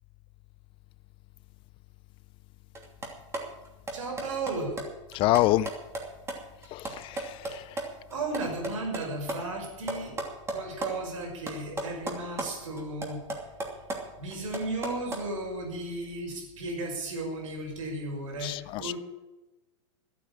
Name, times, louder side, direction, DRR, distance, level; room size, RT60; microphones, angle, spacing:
sound 1, 2.7-7.8 8.1-10.9 11.2-12.5 12.8-15.2, right 2 dB, 15° right, 2.7 m, -35 dB
voice 1, 3.9-4.8 8.1-10.2 10.5-13.2 14.2-18.9, right 2 dB, 80° right, 2 dB, 5.8 m, -34 dB
voice 2, 5.1-5.7 6.7-7.3 18.4-18.9, left 16 dB, 35° left, 19 dB, 0.4 m, -26 dB
12.5 x 8.7 x 8.8 m, 1.0 s
hypercardioid pair, 130°, 16 cm